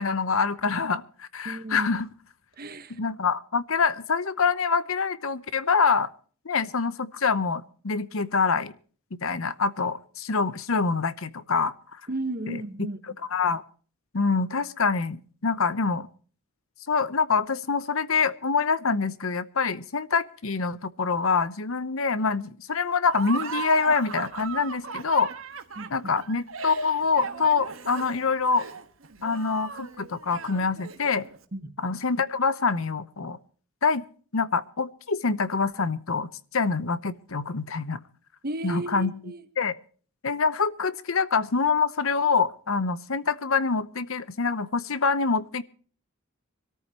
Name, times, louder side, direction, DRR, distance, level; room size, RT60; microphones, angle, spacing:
voice 1, 0.0-2.1 2.9-6.1 6.4-8.7 9.1-12.0 12.5-12.6 13.3-13.6 14.1-16.1 16.9-25.3 25.9-28.7 29.2-31.3 31.8-33.4 33.8-34.0 34.3-38.0 38.6-39.1 39.6-39.8 40.2-45.6, left 4 dB, 70° left, 0.9 m, -25 dB
voice 2, 1.4-1.9 2.6-3.0 12.1-13.0 25.7-25.9 31.5-31.7 38.4-39.5, right 2 dB, 45° right, 1.3 m, -33 dB
Laughter, 23.1-31.4, right 5 dB, 65° right, 1.4 m, -37 dB
25.0 x 13.5 x 2.9 m
head